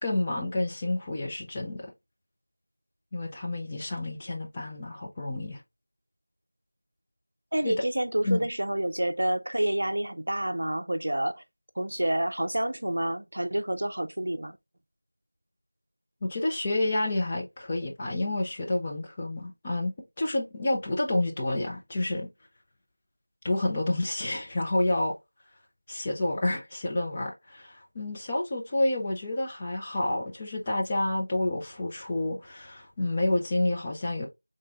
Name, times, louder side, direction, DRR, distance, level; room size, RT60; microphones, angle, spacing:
voice 1, 0.0-1.9 3.1-5.6 7.6-7.9 8.2-8.5 16.2-19.9 20.2-22.3 23.4-25.1 25.9-34.3, left 2 dB, 10° left, 0.3 m, -29 dB
voice 2, 7.5-11.4 11.8-14.6, right 1 dB, 55° right, 0.5 m, -28 dB
3.9 x 3.7 x 2.3 m
figure-of-eight pair, 175°, 0 cm